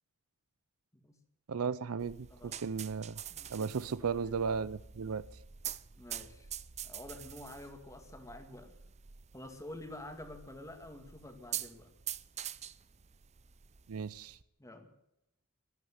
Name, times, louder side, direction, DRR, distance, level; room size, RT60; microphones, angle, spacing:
voice 1, 1.5-3.2 3.5-5.2 13.9-14.4, right 5 dB, 80° right, 0.5 m, -35 dB
sound 1, 2.0-14.4, right 10 dB, 30° right, 0.5 m, -46 dB
voice 2, 2.3-2.8 3.3-4.4 6.0-6.5 6.8-8.7 9.3-11.9 14.6-14.9, left 1 dB, 15° left, 2.0 m, -49 dB
12.5 x 12.0 x 9.6 m
head